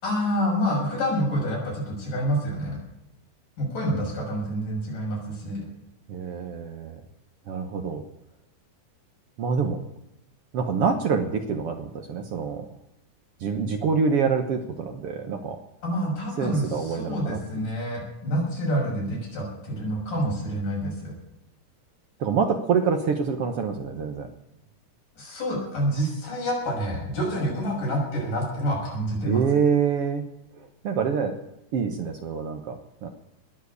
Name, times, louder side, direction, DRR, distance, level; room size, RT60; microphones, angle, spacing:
voice 1, 0.0-2.8 3.6-5.7 15.8-21.1 25.2-29.4, equal, 80° left, -2 dB, 8.0 m, -27 dB
voice 2, 6.1-7.0 7.5-8.0 9.4-9.8 10.5-12.7 13.4-15.6 16.4-17.4 22.2-24.3 29.2-30.2 30.6-31.4 31.7-33.1, right 6 dB, 60° right, 6 dB, 1.7 m, -26 dB
20.0 x 7.5 x 8.3 m, 0.87 s
omnidirectional pair, 3.7 m